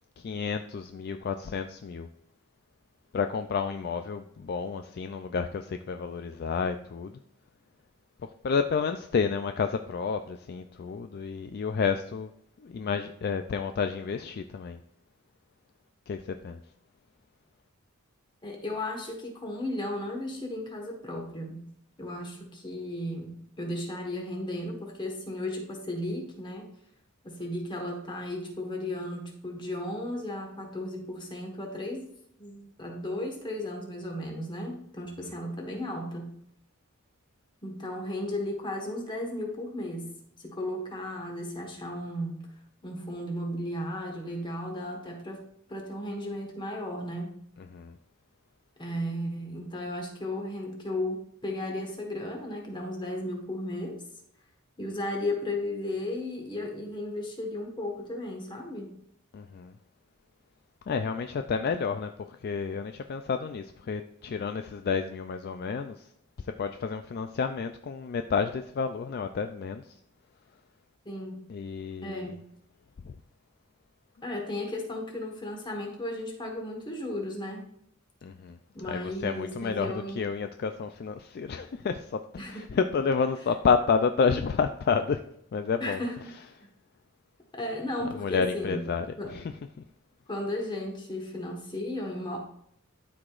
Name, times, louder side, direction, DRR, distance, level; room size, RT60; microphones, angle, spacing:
voice 1, 0.2-2.1 3.1-7.1 8.4-12.3 12.6-14.8 16.1-16.6 47.7-47.9 59.3-59.7 60.9-66.0 66.6-69.8 71.5-72.3 73.0-73.1 78.2-78.6 78.9-82.2 82.5-85.2 85.5-86.0 88.1-89.1 89.3-89.4, left 5 dB, 45° left, 8 dB, 0.3 m, -30 dB
voice 2, 18.4-21.7 22.0-26.7 27.2-32.1 32.4-36.3 37.6-42.5 42.8-45.4 45.7-47.3 48.8-54.0 54.8-58.9 71.0-71.4 72.0-72.4 74.2-77.6 78.7-80.3 82.4-82.8 85.8-86.3 87.5-88.8 89.2-89.4 90.3-92.4, left 1 dB, 20° left, 1 dB, 1.4 m, -35 dB
12.0 x 4.9 x 2.5 m, 0.70 s
head